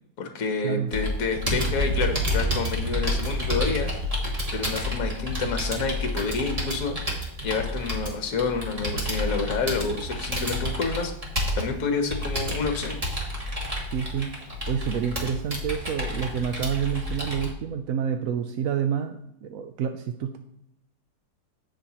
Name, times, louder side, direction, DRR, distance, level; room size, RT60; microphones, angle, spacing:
voice 1, 0.2-3.9 4.5-11.1 11.6-13.0, left 4 dB, 50° left, 5 dB, 1.5 m, -29 dB
Computer keyboard, 0.9-17.5, equal, 20° right, 1.7 m, -29 dB
voice 2, 13.9-14.3 14.7-20.4, right 8 dB, 70° right, 6 dB, 0.8 m, -28 dB
16.5 x 5.7 x 3.0 m, 0.77 s
omnidirectional pair, 2.0 m